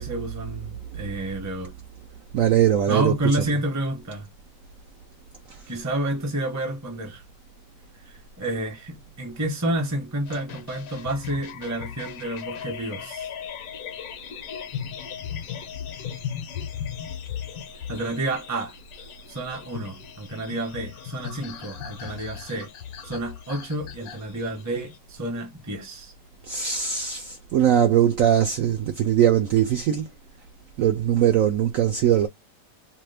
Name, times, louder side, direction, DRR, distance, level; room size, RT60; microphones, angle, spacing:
voice 1, 0.0-1.8 2.9-4.3 5.7-7.2 8.0-13.3 17.9-18.7 19.3-22.7 23.0-26.1, right 1 dB, 15° right, 0.6 m, -30 dB
voice 2, 2.3-3.4 26.5-30.1 30.8-32.3, right 10 dB, 70° right, 0.8 m, -21 dB
sound 1, 10.3-25.0, left 8 dB, 65° left, 1.1 m, -37 dB
2.9 x 2.4 x 3.3 m
omnidirectional pair, 1.8 m